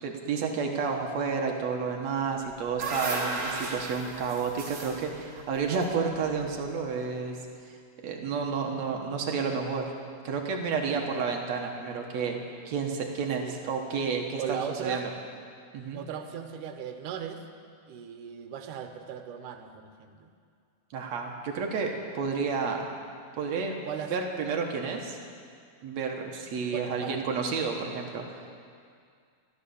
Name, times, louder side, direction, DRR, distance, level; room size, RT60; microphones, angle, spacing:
voice 1, 0.0-7.4 7.6-7.7 8.0-9.9 10.2-15.1 15.7-16.0 20.9-22.8 23.4-23.8 24.1-25.2 25.8-28.4, right 5 dB, 65° right, 2 dB, 2.4 m, -31 dB
sound 1, 2.3-6.6, right 3 dB, 45° right, 2.7 m, -35 dB
voice 2, 14.4-15.1 15.9-17.4 17.9-20.3 23.9-24.1 26.7-27.2, right 8 dB, 85° right, 7 dB, 2.5 m, -38 dB
14.0 x 13.0 x 6.9 m, 2.2 s
omnidirectional pair, 3.6 m